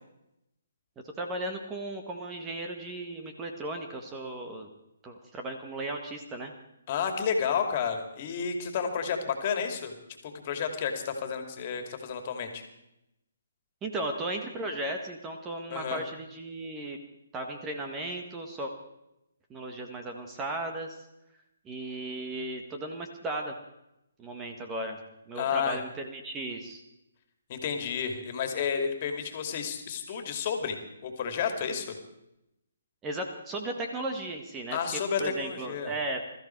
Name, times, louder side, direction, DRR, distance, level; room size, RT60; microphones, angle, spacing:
voice 1, 1.2-4.7 5.0-6.5 13.8-17.0 17.3-18.7 19.5-20.9 21.6-23.5 24.2-25.0 25.3-26.8 33.0-36.2, right 2 dB, 15° right, 4 dB, 1.7 m, -36 dB
voice 2, 6.9-9.9 10.2-12.6 15.7-16.0 25.4-25.8 27.5-31.9 34.7-35.9, left 7 dB, 40° left, 5 dB, 2.7 m, -31 dB
21.5 x 14.0 x 4.7 m, 0.85 s
hypercardioid pair, 150°, 0 cm